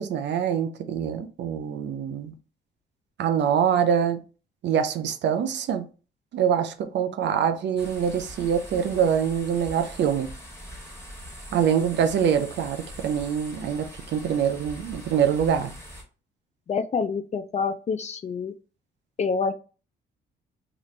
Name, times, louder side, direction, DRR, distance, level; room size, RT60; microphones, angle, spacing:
voice 1, 0.0-2.3 3.2-4.2 4.6-5.9 6.3-10.3 11.5-15.7, right 8 dB, 65° right, 0.5 m, -24 dB
sound 1, 7.8-16.0, equal, 10° left, 1.4 m, -42 dB
voice 2, 16.7-18.5 19.2-19.5, left 5 dB, 35° left, 0.4 m, -27 dB
3.0 x 2.4 x 3.2 m
cardioid pair, 90°, 20 cm